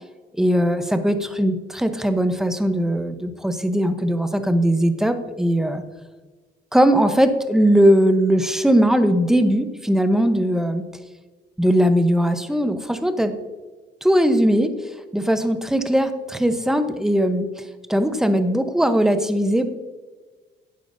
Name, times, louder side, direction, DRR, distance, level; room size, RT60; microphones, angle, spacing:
voice 1, 0.4-5.8 6.7-10.8 11.6-13.3 14.0-14.7 15.1-17.5 17.9-19.7, equal, ahead, 9 dB, 0.9 m, -19 dB
12.0 x 9.2 x 2.7 m, 1.3 s
cardioid pair, 90°, 20 cm